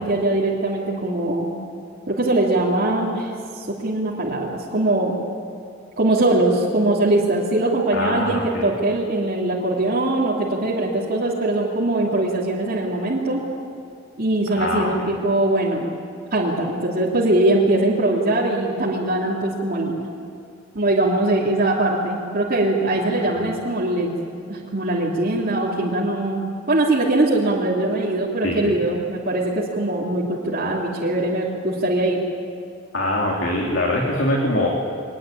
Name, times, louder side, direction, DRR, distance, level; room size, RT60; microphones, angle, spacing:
voice 1, 0.0-1.5 2.1-5.1 6.0-13.4 14.2-15.9 16.3-20.0 20.7-24.1 24.5-32.2, right 2 dB, 50° right, -6 dB, 3.0 m, -21 dB
voice 2, 7.9-8.7 14.5-15.1 23.3-23.5 28.4-28.7 32.9-34.7, left 1 dB, 70° left, -2 dB, 3.2 m, -23 dB
23.0 x 20.0 x 9.1 m, 2.5 s
head